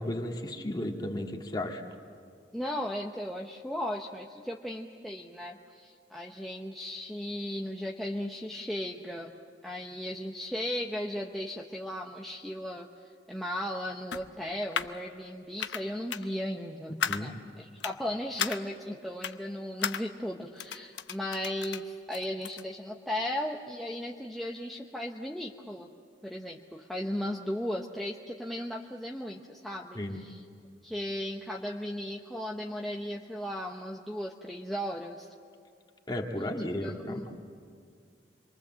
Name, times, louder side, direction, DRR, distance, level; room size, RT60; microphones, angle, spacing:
voice 1, 0.0-1.8 17.1-17.3 29.9-30.2 36.1-37.3, left 1 dB, 25° left, 1 dB, 2.1 m, -34 dB
voice 2, 2.5-9.3 9.6-25.9 26.2-30.4 30.8-35.3 36.4-36.5 36.8-37.2, left 1 dB, ahead, -2 dB, 0.9 m, -36 dB
sound 1, 14.1-15.0 15.6-15.8 16.1-16.3 17.0-17.2 17.8-18.0 18.4-18.6 19.2-19.4 19.8-20.0 20.6-21.8 22.1-22.6, left 7 dB, 80° left, 0.8 m, -34 dB
27.5 x 23.0 x 7.5 m, 2.3 s
head